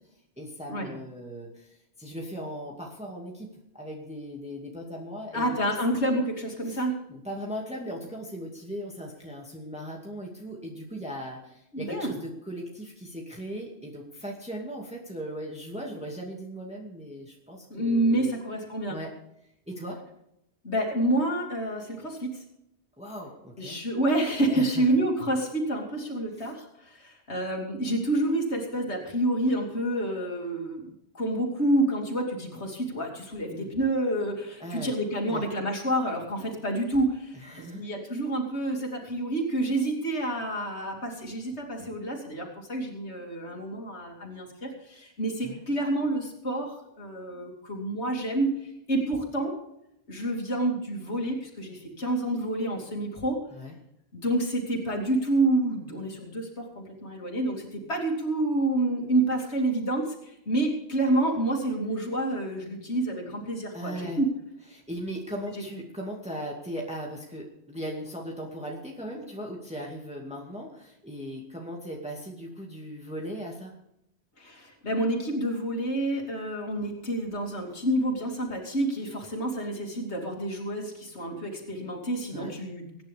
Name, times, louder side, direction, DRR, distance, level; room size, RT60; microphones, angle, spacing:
voice 1, 0.4-5.8 6.6-18.4 18.9-19.1 19.7-20.0 23.0-23.8 24.5-24.8 26.4-26.5 33.5-33.7 34.6-34.9 35.3-35.4 37.3-37.9 45.4-45.6 53.5-53.7 63.7-64.2 64.7-73.7 82.3-82.6, equal, 5° right, -2 dB, 2.3 m, -38 dB
voice 2, 5.3-7.0 11.7-12.1 17.7-19.0 20.6-22.4 23.6-49.5 50.1-53.4 54.1-64.3 65.5-65.6 74.4-83.0, right 1 dB, 90° left, 0 dB, 3.0 m, -28 dB
24.5 x 10.0 x 3.6 m, 0.80 s
omnidirectional pair, 1.1 m